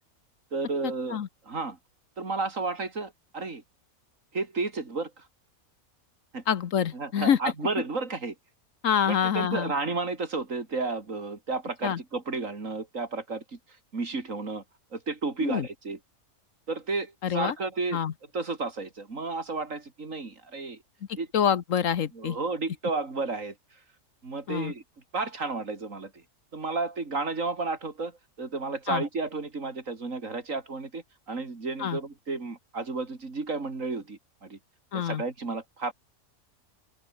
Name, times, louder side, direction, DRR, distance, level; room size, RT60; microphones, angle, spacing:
voice 1, 0.5-1.8 2.2-3.6 4.3-5.3 6.3-6.4 6.9-8.3 9.0-13.6 13.9-14.6 14.9-16.0 16.7-18.0 18.3-20.8 21.2-21.3 22.1-23.5 24.2-24.8 25.1-26.2 26.5-34.6 34.9-35.9, right 3 dB, 60° right, 3.5 m, -32 dB
voice 2, 6.5-7.4 8.8-9.7 11.8-12.0 15.4-15.7 17.2-17.5 17.9-18.1 21.3-22.4 24.5-24.7 28.9-29.0 31.8-32.0 34.9-35.2, left 8 dB, 65° left, 1.3 m, -26 dB
omnidirectional pair, 1.5 m